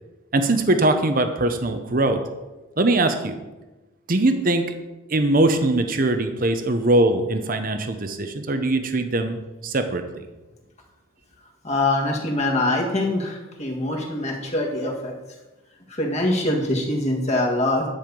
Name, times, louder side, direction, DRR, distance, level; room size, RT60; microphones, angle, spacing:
voice 1, 0.3-2.2 2.8-3.4 4.1-4.7 5.1-10.2, right 2 dB, 40° right, 8 dB, 0.8 m, -21 dB
voice 2, 11.6-15.1 15.9-17.9, left 1 dB, 30° left, 0 dB, 1.7 m, -23 dB
10.5 x 5.6 x 6.9 m, 1.1 s
head